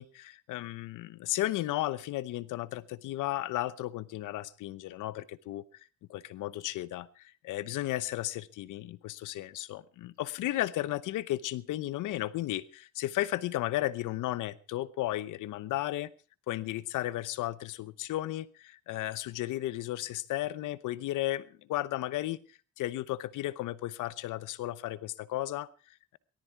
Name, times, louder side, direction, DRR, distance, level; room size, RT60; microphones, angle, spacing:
voice 1, 0.0-5.6 6.1-16.1 16.5-22.4 22.8-26.2, left 15 dB, 85° left, 17 dB, 0.9 m, -34 dB
18.0 x 13.0 x 4.6 m, 0.36 s
cardioid pair, 90°, 30 cm